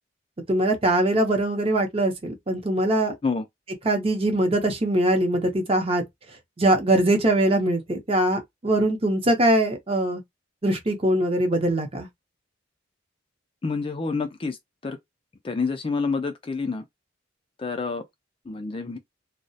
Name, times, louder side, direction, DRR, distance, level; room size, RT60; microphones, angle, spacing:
voice 1, 0.5-3.1 3.9-6.0 6.6-10.2 10.6-12.1, right 1 dB, 30° right, 0.6 m, -22 dB
voice 2, 13.6-14.6 14.8-15.0 15.4-16.9 17.6-18.0 18.5-19.0, left 4 dB, 25° left, 0.3 m, -28 dB
2.2 x 2.0 x 2.6 m
head